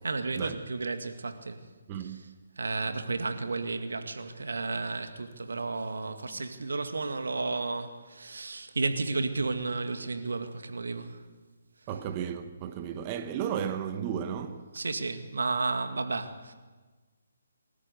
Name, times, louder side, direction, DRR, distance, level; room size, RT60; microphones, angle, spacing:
voice 1, 0.0-1.6 2.0-2.2 2.6-11.2 14.7-16.5, right 3 dB, 85° right, 2.1 m, -32 dB
voice 2, 1.9-2.3 11.9-14.7, right 8 dB, 25° right, 1.0 m, -34 dB
23.5 x 14.0 x 8.2 m
hypercardioid pair, 155°, 0 cm